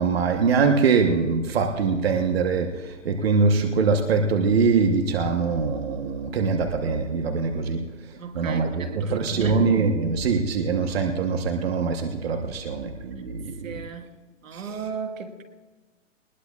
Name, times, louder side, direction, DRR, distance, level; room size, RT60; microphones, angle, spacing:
voice 1, 0.0-7.9 8.3-13.7 14.5-14.6, right 4 dB, 50° right, 1.1 m, -23 dB
voice 2, 8.2-9.7 13.6-14.2 14.4-15.4, right 6 dB, 80° right, 1.7 m, -35 dB
20.5 x 20.0 x 2.4 m
hypercardioid pair, 180°, 39 cm